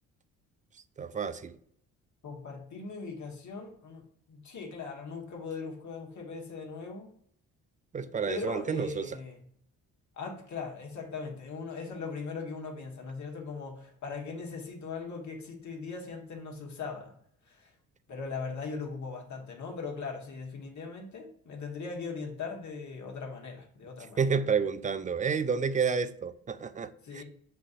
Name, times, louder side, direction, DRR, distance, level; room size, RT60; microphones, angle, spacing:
voice 1, 1.0-1.5 7.9-9.1 24.2-26.9 27.1-27.2, right 6 dB, 20° right, 0.3 m, -30 dB
voice 2, 2.2-7.1 8.3-9.4 10.2-17.1 17.5-17.7 18.1-24.2 27.0-27.2, left 4 dB, 50° left, 1.3 m, -39 dB
7.6 x 2.6 x 2.5 m
hypercardioid pair, 50°, 37 cm